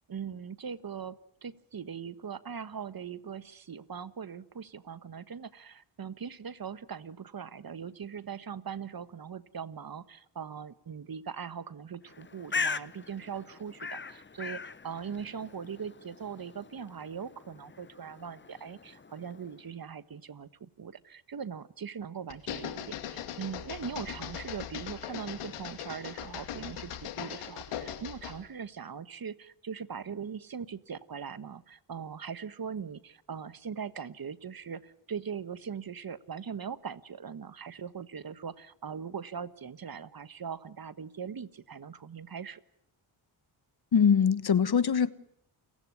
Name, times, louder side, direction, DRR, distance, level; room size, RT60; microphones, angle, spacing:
voice 1, 0.1-42.6, right 7 dB, 45° right, 1.4 m, -40 dB
Bird, 12.1-19.7, left 4 dB, 25° left, 0.9 m, -40 dB
sound 1, 22.3-28.4, left 9 dB, 90° left, 2.4 m, -40 dB
voice 2, 43.9-45.1, left 7 dB, 50° left, 1.3 m, -23 dB
29.0 x 16.0 x 9.6 m
supercardioid pair, 50°, 50 cm